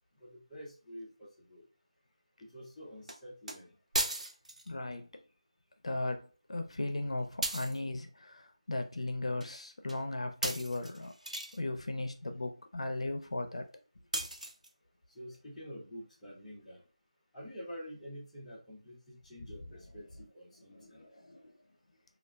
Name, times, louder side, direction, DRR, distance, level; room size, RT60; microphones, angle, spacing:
voice 1, 0.2-1.7 2.4-3.7 15.1-16.8 17.3-21.0, equal, 5° left, 0.4 m, -48 dB
sound 1, 3.1-3.2 3.5-3.6 3.9-4.7 7.4-7.8 9.4-9.5 9.9-10.0 10.4-11.6 14.1-14.7, right 1 dB, 90° right, 0.5 m, -36 dB
voice 2, 4.7-5.2 5.8-11.1 11.5-13.7 20.7-21.5, left 2 dB, 60° left, 0.5 m, -37 dB
2.3 x 2.1 x 3.3 m
figure-of-eight pair, 175°, 4 cm